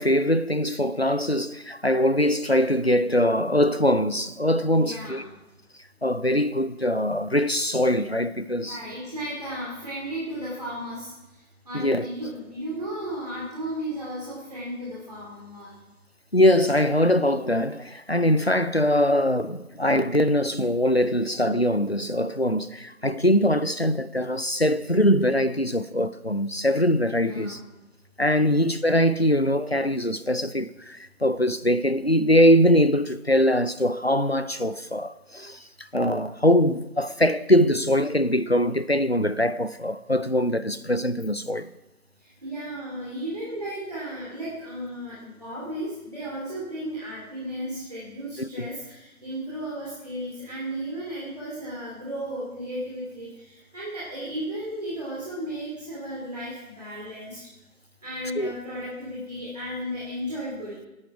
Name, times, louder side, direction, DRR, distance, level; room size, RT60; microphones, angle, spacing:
voice 1, 0.0-5.2 6.0-8.8 11.7-12.1 16.3-27.6 28.2-35.6 35.9-41.7 48.4-48.7 58.4-58.5, equal, 45° left, 0.5 m, -22 dB
voice 2, 4.7-5.3 8.5-15.7 27.2-27.7 42.2-57.4 58.0-60.9, equal, 25° right, 2.8 m, -34 dB
18.0 x 11.5 x 4.8 m
figure-of-eight pair, 175°, 45 cm